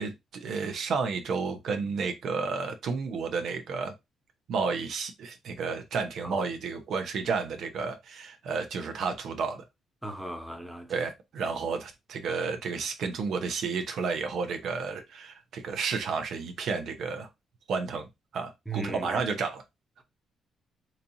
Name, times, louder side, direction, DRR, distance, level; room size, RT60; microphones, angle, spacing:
voice 1, 0.0-3.9 4.5-9.6 10.9-17.3 17.7-18.1 18.3-19.6, right 5 dB, 70° right, 0.8 m, -31 dB
voice 2, 10.0-11.1 18.7-19.3, right 2 dB, ahead, 0.8 m, -38 dB
4.2 x 2.7 x 2.7 m
cardioid pair, 90°, 0 cm